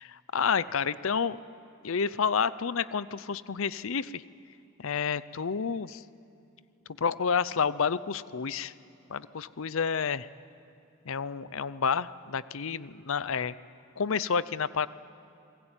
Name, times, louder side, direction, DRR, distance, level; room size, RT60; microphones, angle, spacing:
voice 1, 0.0-1.4 1.8-4.2 4.8-6.0 7.0-8.7 9.1-10.3 11.1-13.5 14.0-14.9, left 6 dB, 65° left, 17 dB, 0.6 m, -29 dB
28.5 x 21.0 x 9.0 m, 2.8 s
head